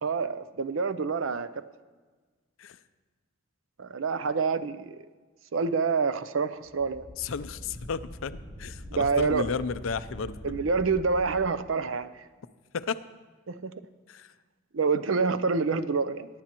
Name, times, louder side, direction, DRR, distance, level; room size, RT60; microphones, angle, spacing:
voice 1, 0.0-1.5 3.8-4.9 5.5-7.0 8.9-9.5 10.4-12.1 13.5-13.7 14.7-16.3, right 4 dB, 70° right, 13 dB, 0.5 m, -27 dB
sound 1, 6.6-11.4, equal, 25° right, 2.9 m, -43 dB
voice 2, 7.2-10.6 12.7-13.0 14.1-14.3, left 5 dB, 75° left, 13 dB, 0.5 m, -33 dB
21.5 x 11.0 x 3.0 m, 1.4 s
head